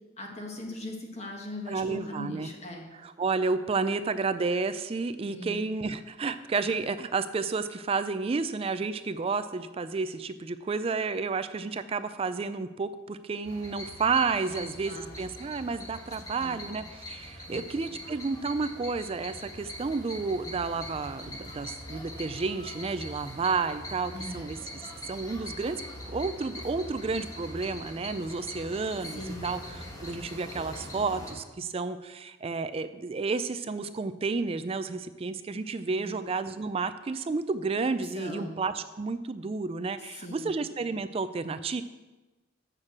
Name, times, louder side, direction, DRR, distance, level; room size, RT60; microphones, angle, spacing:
voice 1, 0.2-2.9 5.3-5.6 14.5-15.1 16.4-16.6 17.5-17.7 24.1-24.4 29.1-29.5 36.0-36.2 38.1-38.6 40.1-40.5, left 1 dB, 35° left, 0 dB, 1.3 m, -40 dB
voice 2, 1.7-2.5 2.9-41.8, right 4 dB, 30° right, 12 dB, 0.3 m, -31 dB
sound 1, 13.4-31.3, left 1 dB, 20° left, 1.8 m, -42 dB
6.5 x 6.5 x 7.2 m, 1.2 s
head